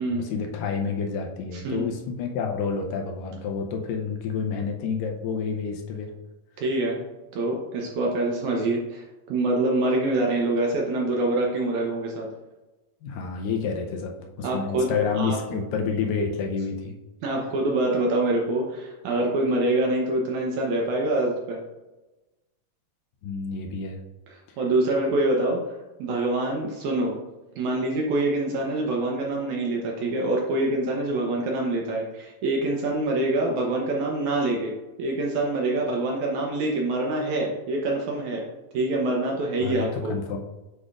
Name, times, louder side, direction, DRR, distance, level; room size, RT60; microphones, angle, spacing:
voice 1, 0.1-6.1 13.0-16.9 23.2-24.0 39.6-40.4, left 5 dB, 80° left, 2 dB, 2.2 m, -29 dB
voice 2, 1.5-1.9 6.6-7.0 7.3-12.3 14.4-14.9 15.2-15.6 17.2-21.6 24.3-25.6 26.0-27.2 27.6-34.7 35.0-38.4 38.7-40.1, right 2 dB, 70° right, -1 dB, 2.0 m, -25 dB
8.2 x 4.9 x 2.4 m, 1.1 s
omnidirectional pair, 4.0 m